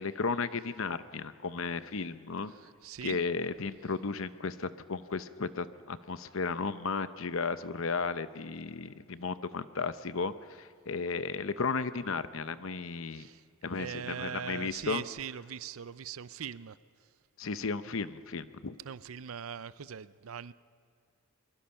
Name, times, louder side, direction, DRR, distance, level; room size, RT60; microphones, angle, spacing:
voice 1, 0.0-2.5 3.0-13.3 13.6-15.0 17.4-18.8, left 4 dB, 65° left, 13 dB, 0.8 m, -34 dB
voice 2, 2.6-3.2 13.1-13.4 13.8-16.8 18.8-20.5, right 8 dB, 75° right, 17 dB, 0.5 m, -41 dB
23.0 x 22.0 x 5.7 m, 2.2 s
head